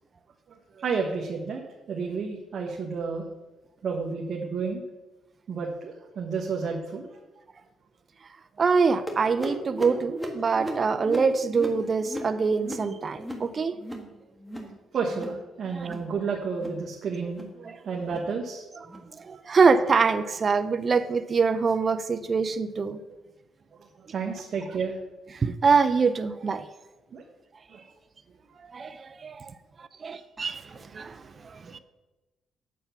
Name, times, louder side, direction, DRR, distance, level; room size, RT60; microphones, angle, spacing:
voice 1, 0.7-1.6 1.9-3.2 3.8-4.8 5.5-7.2 14.9-18.6 24.0-25.0 27.1-27.2 27.7-27.8 30.1-30.2 30.7-30.8 31.7-31.8, right 5 dB, 55° right, 0 dB, 1.3 m, -31 dB
voice 2, 8.6-13.8 15.7-15.9 17.7-17.8 19.1-23.0 25.3-26.7 28.6-29.5 29.8-31.8, right 5 dB, 40° right, 10 dB, 0.5 m, -25 dB
sound 1, 9.1-14.1 14.4-14.8 15.0-15.4 15.7-16.1 16.5-16.8 17.2-17.6 18.0-18.3 18.8-19.1 19.6-19.9 20.5-20.7 21.4-21.5 22.2-22.3, right 1 dB, ahead, 1.6 m, -38 dB
8.3 x 6.8 x 5.8 m, 1.1 s
cardioid pair, 90°, 0 cm